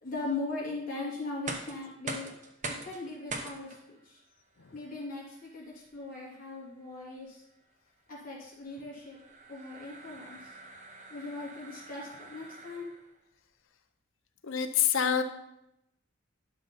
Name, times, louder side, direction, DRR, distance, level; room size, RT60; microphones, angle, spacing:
voice 1, 0.0-2.3 2.6-4.2 4.7-7.4 8.1-9.2 9.5-10.4 11.1-12.9, left 3 dB, 45° left, -5 dB, 3.0 m, -39 dB
sound 1, 1.3-13.2, right 3 dB, 40° right, 1.0 m, -45 dB
voice 2, 14.4-15.2, left 8 dB, 80° left, 8 dB, 0.7 m, -27 dB
11.5 x 3.9 x 5.6 m, 0.83 s
head